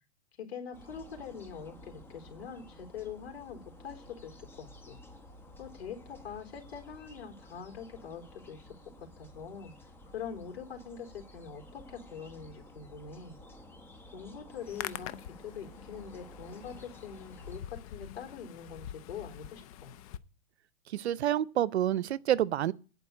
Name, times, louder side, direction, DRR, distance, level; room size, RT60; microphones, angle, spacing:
voice 1, 0.4-5.0 5.6-9.7 10.1-13.4 14.1-19.9, left 7 dB, 70° left, 3.9 m, -44 dB
sound 1, 0.7-17.6, left 1 dB, 5° left, 1.1 m, -53 dB
Hands, 14.5-20.2, left 11 dB, 35° left, 0.5 m, -45 dB
voice 2, 20.9-22.7, right 11 dB, 75° right, 0.7 m, -28 dB
10.5 x 5.2 x 8.3 m
hypercardioid pair, 140°, 33 cm